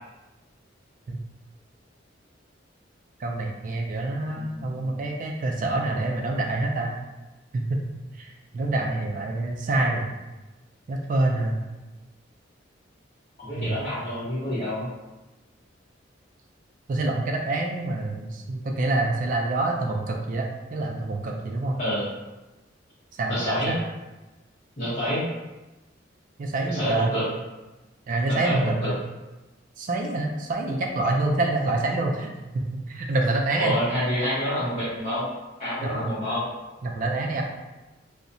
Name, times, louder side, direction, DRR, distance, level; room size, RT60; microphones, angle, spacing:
voice 1, 3.2-6.9 7.5-7.8 8.2-8.3 8.5-10.1 10.9-11.6 13.6-13.8 16.9-21.8 23.2-23.8 26.4-27.1 28.1-29.0 29.8-32.3 32.5-33.7 35.8-36.1 36.8-37.4, right 2 dB, 45° right, 1 dB, 0.3 m, -26 dB
voice 2, 4.3-5.0 13.4-14.9 21.8-22.1 23.3-23.7 24.8-25.2 26.7-27.2 28.3-28.9 33.6-35.3 35.6-36.4, equal, 40° left, -11 dB, 0.8 m, -28 dB
2.7 x 2.1 x 2.5 m, 1.1 s
head